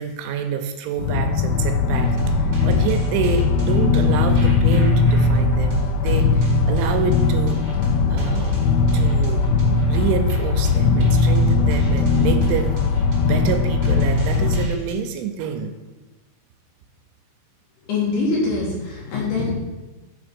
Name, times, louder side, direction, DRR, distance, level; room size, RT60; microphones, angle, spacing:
voice 1, 0.0-7.6 8.1-8.6 8.9-9.5 9.9-12.8 13.2-15.7, right 7 dB, 85° right, 6 dB, 3.0 m, -27 dB
sound 1, 1.0-14.7, left 4 dB, 85° left, 2.6 m, -19 dB
sound 2, 1.9-14.9, right 3 dB, 55° right, 2.5 m, -35 dB
voice 2, 17.9-19.5, left 3 dB, 65° left, -4 dB, 2.9 m, -23 dB
7.1 x 4.9 x 5.2 m, 1.1 s
omnidirectional pair, 5.5 m